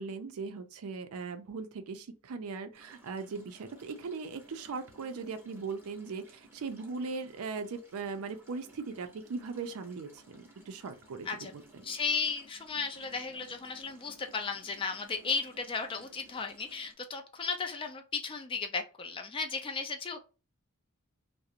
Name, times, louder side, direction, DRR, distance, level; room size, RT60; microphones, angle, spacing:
voice 1, 0.0-11.8, right 4 dB, 70° right, 0.4 m, -39 dB
sound 1, 2.7-16.9, right 1 dB, 10° right, 0.7 m, -59 dB
voice 2, 11.8-20.2, left 5 dB, 25° left, 0.3 m, -35 dB
2.4 x 2.0 x 2.8 m
head